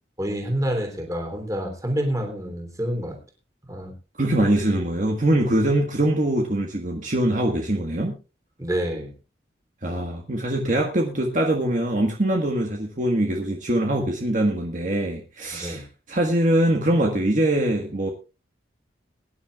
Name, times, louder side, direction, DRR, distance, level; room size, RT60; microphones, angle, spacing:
voice 1, 0.2-3.2 3.7-3.9 8.6-9.1 15.5-15.8, equal, 20° right, 3 dB, 3.2 m, -28 dB
voice 2, 4.2-8.1 9.8-18.1, right 1 dB, 45° right, 1 dB, 1.6 m, -23 dB
22.5 x 10.5 x 2.4 m, 0.31 s
head